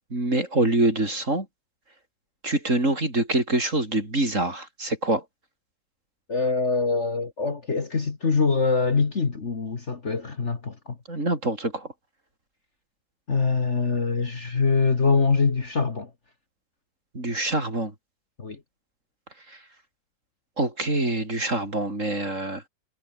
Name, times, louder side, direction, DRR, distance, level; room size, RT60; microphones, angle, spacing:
voice 1, 0.1-1.5 2.4-5.2 11.1-11.9 17.1-17.9 19.5-19.6 20.6-22.7, right 2 dB, 40° right, 6.1 m, -25 dB
voice 2, 6.3-11.0 13.3-16.1 18.4-18.6, left 4 dB, 40° left, 2.1 m, -24 dB
omnidirectional pair, 1.9 m